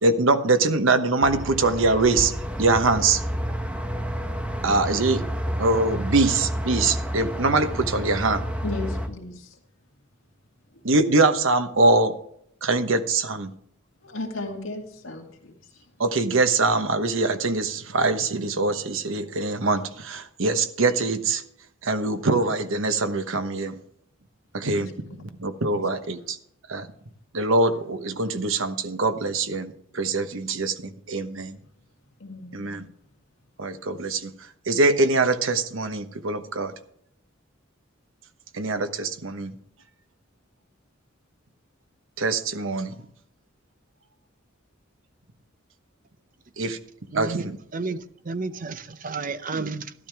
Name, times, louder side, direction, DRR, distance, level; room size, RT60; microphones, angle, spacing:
voice 1, 0.0-3.2 4.6-5.2 5.6-8.4 10.8-12.2 12.6-13.5 16.0-21.4 21.8-23.8 24.5-24.9 25.2-26.4 26.7-26.9 27.3-31.6 32.5-32.9 33.6-34.3 34.7-36.7 38.5-39.5 42.2-43.0 46.6-46.8 47.1-47.6, right 3 dB, 80° right, 1.1 m, -23 dB
sound 1, 1.2-9.1, equal, 5° right, 0.9 m, -30 dB
voice 2, 8.6-9.5 14.0-15.5 24.7-24.8 25.7-25.8 32.2-32.9, left 2 dB, 85° left, 2.1 m, -35 dB
voice 3, 47.1-49.9, right 4 dB, 40° right, 0.7 m, -32 dB
12.5 x 12.0 x 3.5 m
head